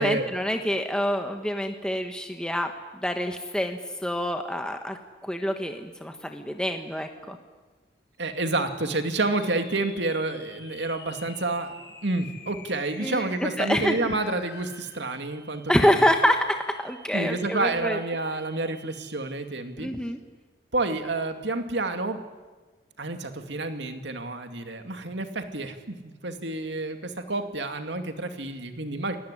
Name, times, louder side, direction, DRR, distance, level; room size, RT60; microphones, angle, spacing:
voice 1, 0.0-2.7 3.0-7.4 13.0-14.1 15.7-18.0 19.8-20.2, equal, 5° left, 5 dB, 1.3 m, -26 dB
sound 1, 8.1-19.7, left 3 dB, 70° left, 5.3 m, -49 dB
voice 2, 8.2-11.7 12.0-16.1 17.1-19.9 20.7-22.2 23.0-29.2, right 2 dB, 70° right, 6 dB, 2.4 m, -29 dB
28.0 x 19.0 x 10.0 m, 1.3 s
head